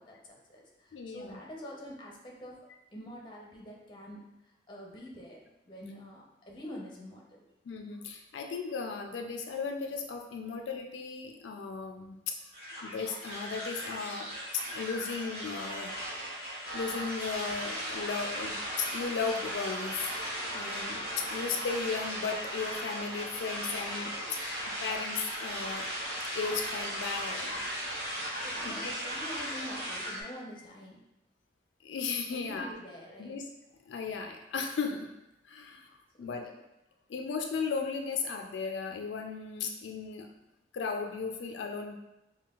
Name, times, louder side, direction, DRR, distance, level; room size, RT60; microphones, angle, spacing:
voice 1, 0.0-2.6 2.9-4.2 4.7-7.4 28.4-31.0 32.3-33.3 36.2-36.5, equal, 25° left, -2 dB, 0.7 m, -46 dB
voice 2, 0.9-1.4 7.7-12.5 12.8-16.0 16.7-20.0 20.5-25.9 26.3-27.6 28.6-28.9 31.8-32.7 33.2-33.5 33.9-35.1 35.5-36.5 37.1-40.3 40.7-42.0, left 5 dB, 85° left, 3 dB, 0.3 m, -36 dB
sound 1, 12.5-30.2, equal, 35° right, 1.3 m, -37 dB
5.4 x 2.2 x 2.3 m, 0.90 s
head